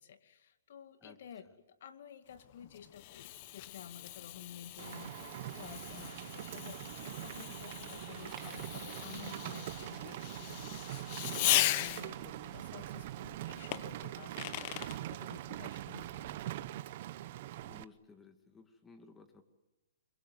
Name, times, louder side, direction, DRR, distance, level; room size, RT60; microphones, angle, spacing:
voice 1, 0.0-16.8, left 8 dB, 60° left, 9 dB, 2.3 m, -52 dB
Fireworks, 2.4-12.3 13.7-15.0, left 16 dB, 40° left, 0.9 m, -38 dB
Rain, 4.8-17.8, right 14 dB, 45° right, 0.9 m, -43 dB
sound 1, 7.8-14.8, right 5 dB, 10° right, 2.4 m, -61 dB
voice 2, 11.1-11.7 17.6-19.4, left 4 dB, 10° left, 7 dB, 2.3 m, -57 dB
28.5 x 23.0 x 8.0 m, 1.1 s
hypercardioid pair, 150°, 0 cm